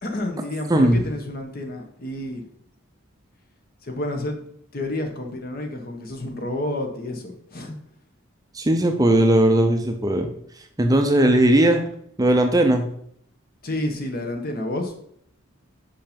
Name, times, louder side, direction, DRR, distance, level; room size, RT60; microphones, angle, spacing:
voice 1, 0.0-2.4 3.8-4.4 4.7-7.8 13.6-14.9, left 1 dB, 45° left, 4 dB, 1.2 m, -30 dB
voice 2, 0.7-1.0 8.5-10.3 10.8-11.8 12.2-12.8, right 1 dB, 15° right, 5 dB, 0.6 m, -18 dB
5.7 x 5.6 x 5.1 m, 0.68 s
head